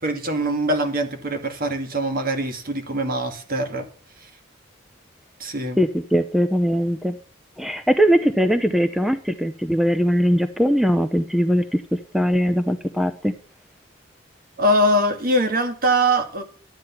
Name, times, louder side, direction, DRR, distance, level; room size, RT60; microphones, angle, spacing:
voice 1, 0.0-3.9 4.2-4.3 5.4-5.8 14.6-16.4, right 1 dB, 50° right, 6 dB, 1.9 m, -22 dB
voice 2, 5.8-7.2 7.6-11.8 12.1-13.3, equal, ahead, 9 dB, 0.6 m, -20 dB
12.0 x 9.2 x 5.8 m, 0.41 s
head